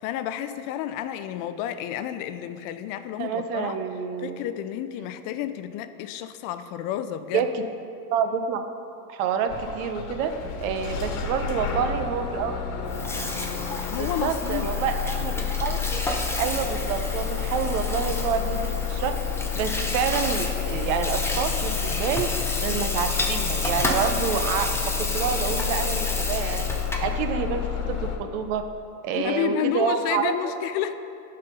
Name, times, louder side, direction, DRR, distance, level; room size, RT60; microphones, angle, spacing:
voice 1, 0.0-3.8 4.2-7.5 13.9-14.7 29.1-30.9, left 10 dB, 50° left, 11 dB, 0.5 m, -30 dB
voice 2, 3.2-4.4 7.3-7.6 8.1-8.6 9.1-10.3 10.6-12.6 14.0-16.0 16.4-19.2 19.6-22.3 22.6-26.6 27.0-28.6 29.0-30.5, right 7 dB, 65° right, 7 dB, 0.9 m, -28 dB
Bus / Engine starting, 9.5-28.2, left 8 dB, 65° left, 1.4 m, -30 dB
Water tap faucet / Sink (filling or washing), 12.8-27.1, left 2 dB, 5° left, 0.7 m, -31 dB
12.0 x 4.4 x 5.3 m, 2.7 s
supercardioid pair, 115°, 45 cm